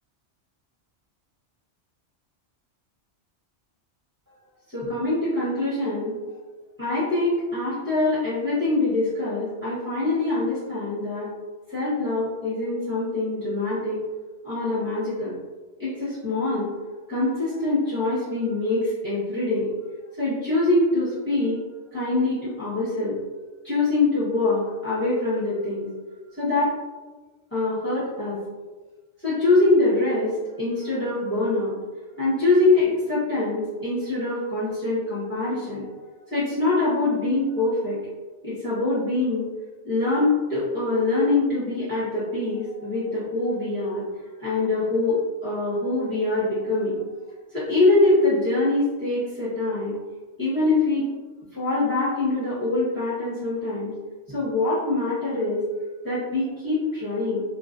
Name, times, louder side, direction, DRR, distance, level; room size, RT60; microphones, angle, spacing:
voice 1, 4.7-6.1 6.8-11.3 11.7-14.0 14.4-15.3 15.8-16.7 17.1-19.7 20.2-21.6 21.9-23.2 23.6-25.9 26.3-26.7 27.5-28.4 29.2-31.7 32.2-35.9 36.3-38.0 38.4-39.4 39.8-44.0 44.4-47.0 47.5-50.0 50.4-51.1 51.5-53.9 54.3-55.6 56.0-57.4, left 2 dB, 10° left, -11 dB, 0.7 m, -24 dB
2.3 x 2.1 x 2.5 m, 1.3 s
omnidirectional pair, 1.2 m